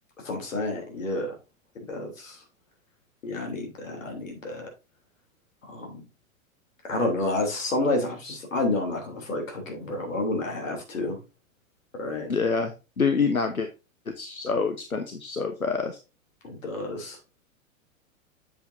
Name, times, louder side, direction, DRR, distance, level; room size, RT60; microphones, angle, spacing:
voice 1, 0.2-1.3 1.9-2.4 3.2-4.7 5.6-6.0 6.8-11.2 11.9-12.3 16.4-17.2, left 2 dB, 65° left, 2 dB, 3.3 m, -30 dB
voice 2, 12.3-13.7 14.2-16.0, left 5 dB, 90° left, 7 dB, 0.9 m, -26 dB
8.0 x 7.7 x 2.7 m, 0.28 s
figure-of-eight pair, 95°, 41 cm